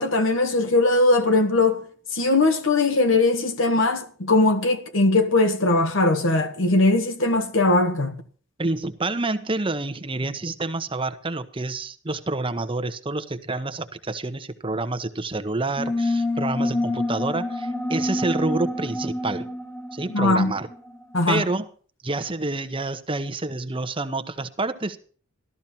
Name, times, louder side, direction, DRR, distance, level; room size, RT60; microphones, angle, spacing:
voice 1, 0.0-8.2 20.1-20.5 21.1-21.4, left 2 dB, 65° left, 1.5 m, -20 dB
voice 2, 8.6-19.5 19.9-20.7 21.3-21.7 22.0-25.0, right 2 dB, 25° right, 1.0 m, -28 dB
sound 1, 15.8-21.0, left 1 dB, 15° left, 1.0 m, -27 dB
13.5 x 13.0 x 4.4 m
head